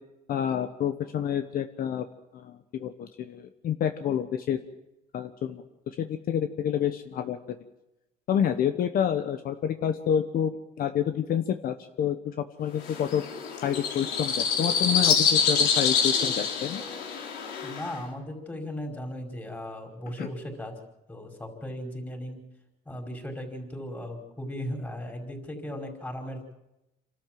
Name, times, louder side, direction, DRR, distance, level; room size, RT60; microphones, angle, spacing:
voice 1, 0.3-2.0 2.3-4.6 5.1-7.4 8.3-13.2 13.6-16.8 20.2-20.3, left 9 dB, 60° left, 8 dB, 1.1 m, -28 dB
sound 1, 12.8-18.0, left 6 dB, 90° left, 3.5 m, -26 dB
voice 2, 17.6-20.7 21.1-22.4 22.8-26.5, equal, 10° left, 2 dB, 5.1 m, -37 dB
27.5 x 13.0 x 7.6 m, 0.91 s
cardioid pair, 110°, 17 cm